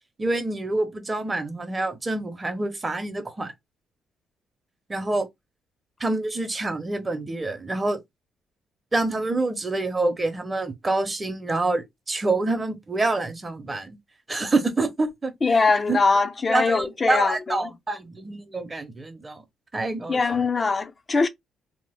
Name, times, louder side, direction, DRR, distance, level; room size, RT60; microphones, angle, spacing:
voice 1, 0.2-3.5 4.9-5.3 6.0-8.0 8.9-14.0 14.3-15.6 15.9-16.0 16.5-19.4 19.7-20.4, right 2 dB, 25° right, 0.8 m, -27 dB
voice 2, 15.4-17.3 20.1-21.3, left 4 dB, 30° left, 0.5 m, -21 dB
2.9 x 2.0 x 3.5 m
cardioid pair, 90°, 0 cm